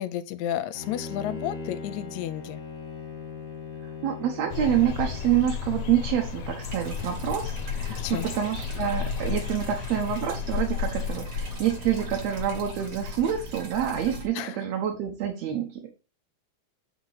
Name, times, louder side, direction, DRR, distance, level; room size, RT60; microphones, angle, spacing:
voice 1, 0.0-2.6 8.0-8.3 14.4-14.6, left 12 dB, 80° left, 1.9 m, -32 dB
Bowed string instrument, 0.7-5.5, left 4 dB, 40° left, 1.2 m, -39 dB
voice 2, 4.0-15.9, right 10 dB, 70° right, 2.0 m, -27 dB
sound 1, 4.5-13.7, left 7 dB, 60° left, 1.7 m, -33 dB
sound 2, 6.6-14.3, equal, 55° right, 1.2 m, -41 dB
7.9 x 2.8 x 4.7 m
omnidirectional pair, 3.3 m